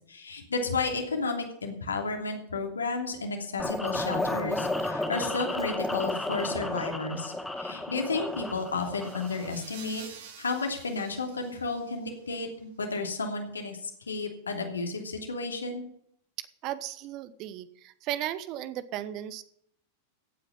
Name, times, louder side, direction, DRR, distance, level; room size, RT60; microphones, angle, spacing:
voice 1, 0.1-10.0 10.4-13.8 14.1-15.8, left 3 dB, 75° left, 3 dB, 2.9 m, -32 dB
sound 1, 3.6-9.5, left 1 dB, 5° left, 1.5 m, -32 dB
sound 2, 8.3-12.2, right 7 dB, 60° right, 2.9 m, -49 dB
voice 2, 16.6-19.4, right 12 dB, 40° right, 15 dB, 1.0 m, -35 dB
16.0 x 9.3 x 5.4 m, 0.68 s
figure-of-eight pair, 90°, 0 cm